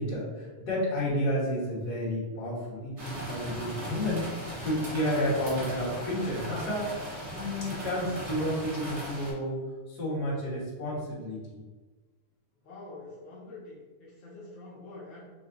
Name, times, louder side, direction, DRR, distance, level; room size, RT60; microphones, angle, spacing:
voice 1, 0.0-9.6 9.9-11.6, equal, 45° left, -8 dB, 1.4 m, -31 dB
sound 1, 3.0-9.3, right 1 dB, 65° right, 0.7 m, -38 dB
voice 2, 12.6-15.2, left 2 dB, 90° left, -6 dB, 1.0 m, -46 dB
4.5 x 4.1 x 2.6 m, 1.3 s
omnidirectional pair, 3.6 m